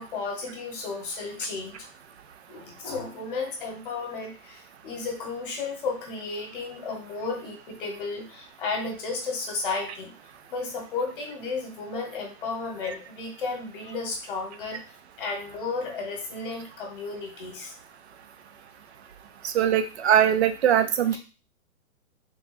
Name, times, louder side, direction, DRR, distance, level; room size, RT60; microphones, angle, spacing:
voice 1, 0.0-1.9 2.5-10.1 10.5-14.8 15.2-17.7, left 4 dB, 35° left, 1 dB, 1.1 m, -33 dB
voice 2, 19.4-21.2, right 9 dB, 50° right, 9 dB, 0.5 m, -21 dB
3.5 x 2.2 x 4.1 m, 0.33 s
hypercardioid pair, 160°, 45 cm